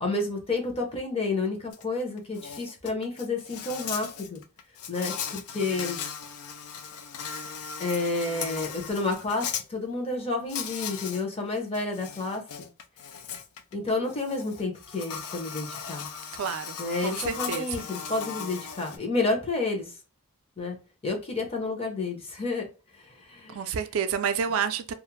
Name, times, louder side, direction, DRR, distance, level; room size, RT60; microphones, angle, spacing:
voice 1, 0.0-4.4 4.9-6.0 7.8-12.4 13.7-16.1 16.8-19.9 20.6-20.8 21.0-22.7 22.9-23.6, left 3 dB, 25° left, 0.7 m, -30 dB
Insect, 1.7-1.8 2.2-9.6 10.5-11.2 11.6-19.0, left 7 dB, 85° left, 0.4 m, -37 dB
voice 2, 16.4-16.8 17.0-17.7 23.5-24.9, right 7 dB, 65° right, 0.4 m, -29 dB
2.4 x 2.0 x 3.0 m
head